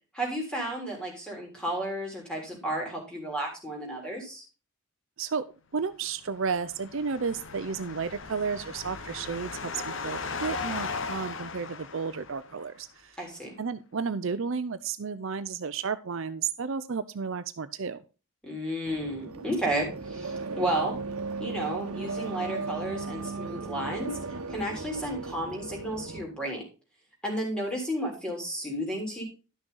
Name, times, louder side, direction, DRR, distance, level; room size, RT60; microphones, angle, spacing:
voice 1, 0.1-4.4 13.2-13.5 18.4-21.0 21.4-24.1 24.5-26.6 27.2-29.2, right 1 dB, 5° left, -1 dB, 3.5 m, -32 dB
voice 2, 5.7-13.2 13.6-18.0, right 5 dB, 60° right, 12 dB, 0.5 m, -32 dB
sound 1, 6.3-12.6, left 4 dB, 55° left, 0.8 m, -37 dB
sound 2, 18.9-26.2, right 3 dB, 85° right, 1.1 m, -36 dB
11.5 x 6.2 x 3.9 m, 0.33 s
head